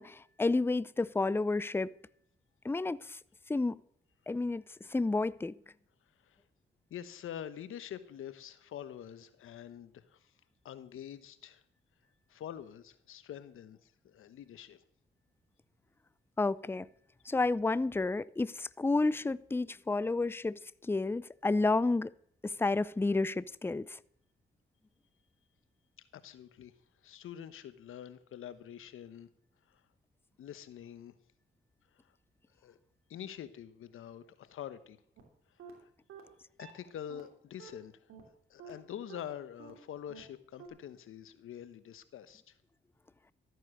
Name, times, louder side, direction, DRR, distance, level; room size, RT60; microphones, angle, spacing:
voice 1, 0.0-1.9 2.6-3.2 3.5-3.8 4.3-4.6 4.9-5.5 16.4-16.9 17.3-22.1 22.4-24.0, left 3 dB, 10° left, 0.5 m, -31 dB
voice 2, 6.9-10.3 10.6-11.6 12.3-14.8 26.1-26.7 27.0-29.3 29.7-29.8 30.4-31.1 32.6-32.8 33.1-35.0 35.8-35.9 36.6-38.1 38.5-42.5, left 10 dB, 80° left, 1.1 m, -46 dB
sound 1, 35.2-35.3 35.6-35.7 36.1-36.2 36.6-36.7 37.1-37.2 37.6-37.7 38.1-38.2 38.6-38.7 39.1-39.2 39.6-39.7 40.1-40.2 40.6-40.7, right 8 dB, 85° right, 3.1 m, -49 dB
13.5 x 9.3 x 6.4 m
cardioid pair, 60°, 21 cm